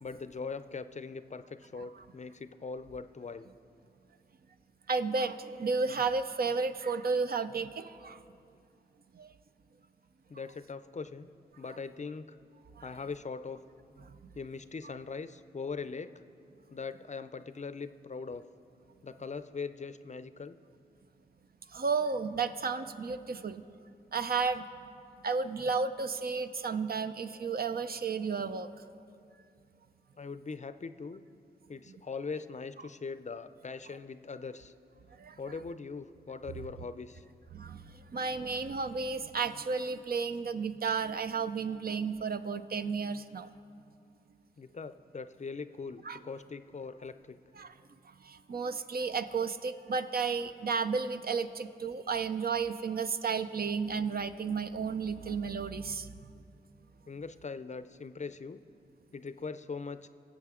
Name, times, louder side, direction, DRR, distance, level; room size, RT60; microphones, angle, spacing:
voice 1, 0.0-3.5 10.3-11.3 11.6-12.4 12.8-13.6 14.3-16.1 16.7-18.5 19.0-20.6 30.2-31.2 31.7-34.7 35.4-37.2 44.6-47.4 57.1-58.6 59.1-60.1, left 4 dB, 40° left, 12 dB, 0.5 m, -41 dB
voice 2, 4.9-8.2 9.1-9.3 12.8-12.9 21.7-23.6 24.1-24.7 25.2-28.7 35.2-35.4 37.5-43.5 46.1-46.2 47.6-47.7 48.1-56.1, right 5 dB, 55° right, 10 dB, 0.5 m, -33 dB
21.5 x 7.6 x 3.7 m, 2.5 s
cardioid pair, 55°, 18 cm